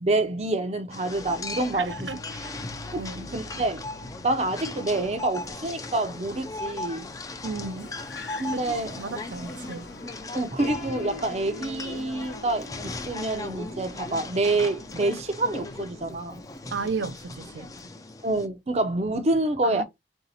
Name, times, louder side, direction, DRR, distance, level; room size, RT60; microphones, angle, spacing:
voice 1, 0.0-2.1 2.9-3.8 4.2-7.1 8.4-9.0 10.3-16.4 18.2-19.8, right 2 dB, 35° right, 0.5 m, -27 dB
sound 1, 0.9-18.5, left 2 dB, 20° left, 0.4 m, -38 dB
Car, 1.1-17.9, left 2 dB, 70° left, 0.7 m, -47 dB
voice 2, 1.7-2.6 2.9-3.3 7.4-7.9 8.5-8.6 9.0-9.9 16.7-17.7 19.6-19.8, right 4 dB, 90° right, 0.5 m, -34 dB
Piano, 10.6-16.4, left 5 dB, 35° left, 0.9 m, -44 dB
3.9 x 2.7 x 4.1 m
head